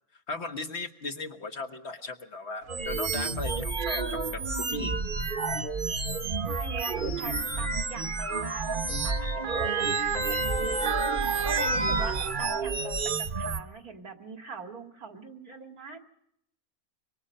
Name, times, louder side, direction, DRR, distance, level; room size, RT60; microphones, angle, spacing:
voice 1, 0.1-4.4 4.7-4.9, left 3 dB, 50° left, 6 dB, 1.6 m, -37 dB
sound 1, 2.7-13.6, right 4 dB, 40° right, 1.2 m, -30 dB
Motor vehicle (road) / Siren, 2.9-3.0 4.0-4.2 5.3-12.9 13.3-13.4, right 4 dB, 60° right, 1.6 m, -33 dB
voice 2, 4.4-5.1 6.4-10.9 11.4-16.0, right 3 dB, 85° right, 5 dB, 2.7 m, -42 dB
26.0 x 24.0 x 5.5 m, 0.76 s
omnidirectional pair, 1.5 m